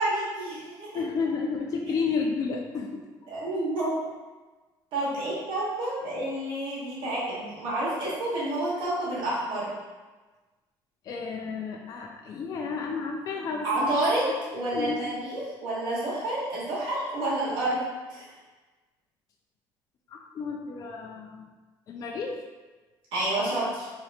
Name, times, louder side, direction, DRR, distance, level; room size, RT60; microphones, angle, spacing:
voice 1, 0.0-0.9 3.3-4.0 4.9-9.7 13.6-18.3 23.1-23.9, right 1 dB, 65° right, -8 dB, 1.1 m, -29 dB
voice 2, 0.9-3.0 11.0-14.0 14.7-15.0 20.1-21.4 21.9-22.4, left 5 dB, 40° left, 1 dB, 0.3 m, -31 dB
2.8 x 2.3 x 3.3 m, 1.3 s
cardioid pair, 120°, 9 cm